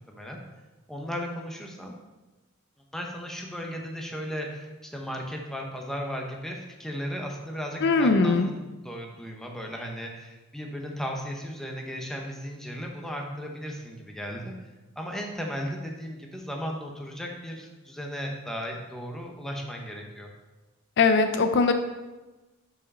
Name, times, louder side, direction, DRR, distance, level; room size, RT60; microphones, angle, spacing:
voice 1, 0.1-0.4 0.9-1.9 2.9-14.5 15.0-20.3, equal, ahead, 0 dB, 0.9 m, -36 dB
voice 2, 7.8-8.5 21.0-21.7, left 4 dB, 55° left, 7 dB, 0.5 m, -20 dB
5.9 x 4.8 x 5.4 m, 1.1 s
head